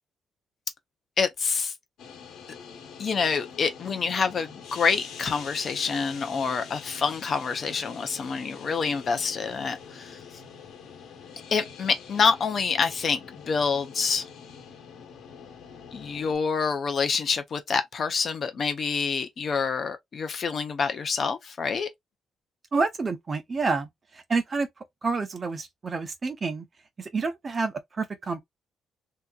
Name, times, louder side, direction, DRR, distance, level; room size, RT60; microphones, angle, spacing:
voice 1, 1.2-1.7 3.0-10.2 11.5-14.2 15.9-21.9, left 5 dB, 40° left, 0.6 m, -27 dB
sound 1, 2.0-16.4, left 6 dB, 75° left, 1.1 m, -45 dB
voice 2, 22.7-23.9 24.3-24.7 25.0-26.6 27.0-28.4, right 4 dB, 30° right, 0.7 m, -28 dB
3.4 x 2.8 x 2.3 m
cardioid pair, 140°, 0 cm